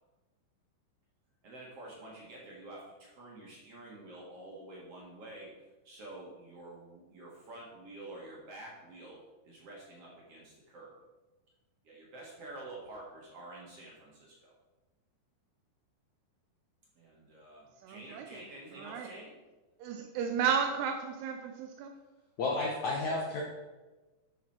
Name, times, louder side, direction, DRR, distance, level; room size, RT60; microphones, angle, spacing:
voice 1, 1.4-5.5 5.8-9.2 9.4-10.9 11.8-14.6 17.0-19.4, right 2 dB, 50° right, -4 dB, 2.0 m, -48 dB
voice 2, 17.8-18.2 18.8-19.1 19.8-21.9, right 7 dB, 80° right, 5 dB, 2.5 m, -33 dB
voice 3, 22.4-23.4, left 3 dB, 85° left, -1 dB, 1.6 m, -31 dB
11.5 x 6.3 x 4.4 m, 1.2 s
omnidirectional pair, 5.2 m